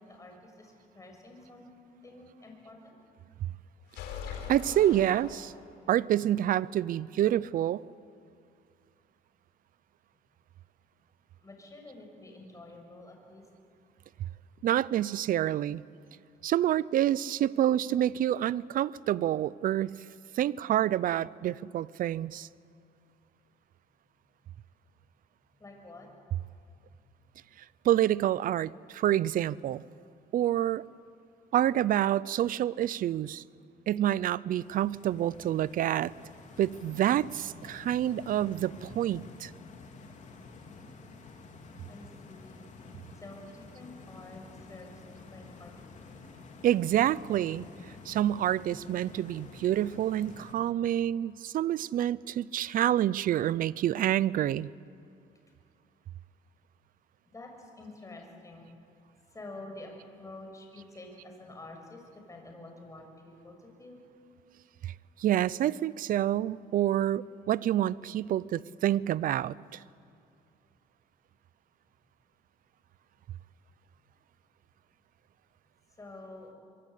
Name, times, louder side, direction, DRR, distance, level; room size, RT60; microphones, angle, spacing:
voice 1, 0.1-1.7 2.0-3.0 11.4-13.5 25.6-26.1 41.9-42.7 43.2-45.0 45.3-45.7 57.2-58.7 59.3-64.0 76.0-76.5, left 2 dB, 20° left, 2 dB, 6.5 m, -48 dB
sound 1, 3.9-6.0, left 6 dB, 80° left, 4.4 m, -42 dB
voice 2, 4.5-5.5 5.9-7.8 14.6-15.8 16.4-19.9 20.4-22.5 27.8-29.8 30.3-30.8 31.5-33.4 33.9-36.1 36.6-39.5 46.6-47.7 48.1-54.7 64.8-64.9 65.2-69.8, right 12 dB, 55° right, 21 dB, 0.6 m, -27 dB
Stream, 34.5-50.5, left 3 dB, 45° left, 3.3 m, -50 dB
24.5 x 23.5 x 8.4 m, 2.4 s
cardioid pair, 110°, 17 cm